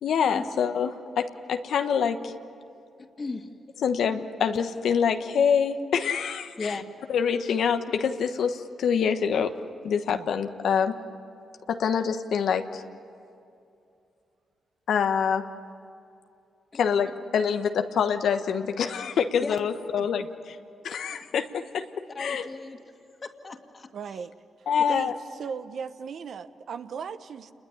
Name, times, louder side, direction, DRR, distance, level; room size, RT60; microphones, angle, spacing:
voice 1, 0.0-2.3 3.8-6.7 7.1-9.5 9.8-11.0 11.7-12.8 14.9-15.5 16.8-20.3 20.8-21.9 22.2-22.5 24.7-25.1, left 7 dB, 75° left, 7 dB, 1.2 m, -25 dB
voice 2, 3.0-3.5 6.6-6.8 16.7-16.8 19.4-19.6 22.1-22.8 23.2-23.9, left 3 dB, 40° left, 5 dB, 2.3 m, -36 dB
voice 3, 23.9-24.3 24.9-25.1 25.4-27.5, right 6 dB, 65° right, 11 dB, 1.0 m, -37 dB
28.0 x 21.5 x 10.0 m, 2.6 s
cardioid pair, 70°, 0 cm